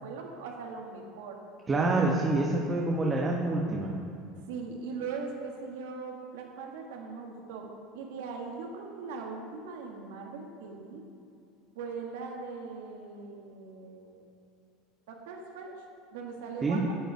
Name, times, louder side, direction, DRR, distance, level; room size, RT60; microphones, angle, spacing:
voice 1, 0.0-1.4 4.3-7.7 7.9-11.0 11.7-14.3 15.1-15.8 16.1-16.9, right 4 dB, 85° right, 1 dB, 1.7 m, -40 dB
voice 2, 1.7-4.0 16.6-16.8, right 2 dB, 20° right, -1 dB, 1.0 m, -27 dB
9.3 x 8.0 x 4.7 m, 2.6 s
supercardioid pair, 120°, 0 cm